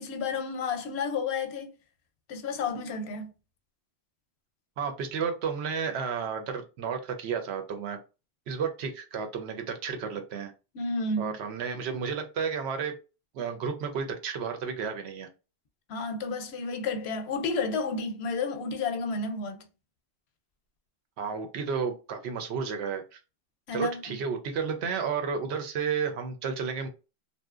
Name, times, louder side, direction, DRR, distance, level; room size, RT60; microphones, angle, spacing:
voice 1, 0.0-1.7 2.3-3.3 10.7-11.4 15.9-19.6 23.7-24.0, left 4 dB, 80° left, 0.8 m, -31 dB
voice 2, 4.8-8.0 8.5-10.5 11.2-12.9 13.3-15.3 21.2-23.2 23.7-26.9, right 6 dB, 85° right, 0.9 m, -32 dB
2.7 x 2.1 x 2.3 m
omnidirectional pair, 1.1 m